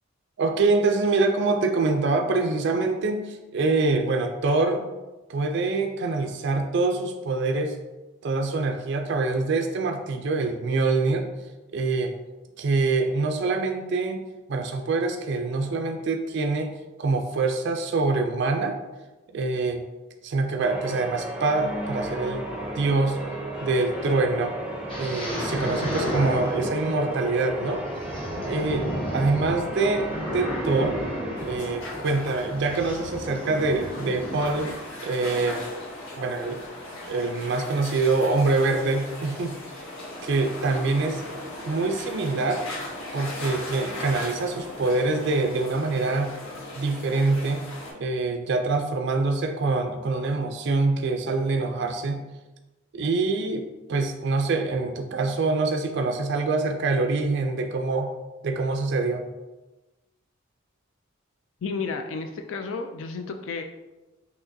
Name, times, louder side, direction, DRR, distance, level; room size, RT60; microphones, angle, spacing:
voice 1, 0.4-4.9 5.3-7.8 8.2-11.3 11.7-12.2 12.6-16.7 17.0-18.8 19.3-19.8 20.2-22.5 22.7-23.2 23.6-24.6 25.0-27.8 28.5-31.0 31.4-34.7 35.0-35.7 36.2-36.6 37.1-39.6 40.2-41.2 41.7-42.6 43.1-46.3 46.8-47.6 47.9-52.2 52.9-58.1 58.4-59.2, right 3 dB, 55° right, 4 dB, 0.4 m, -25 dB
Church bell, 20.6-32.9, right 1 dB, 5° right, 0.5 m, -35 dB
sound 1, 24.9-34.7, equal, 25° left, 0.8 m, -33 dB
sound 2, 31.4-47.9, left 2 dB, 85° left, 1.0 m, -38 dB
voice 2, 61.6-63.6, left 4 dB, 65° left, 6 dB, 0.3 m, -32 dB
6.1 x 2.9 x 2.6 m, 1.1 s
head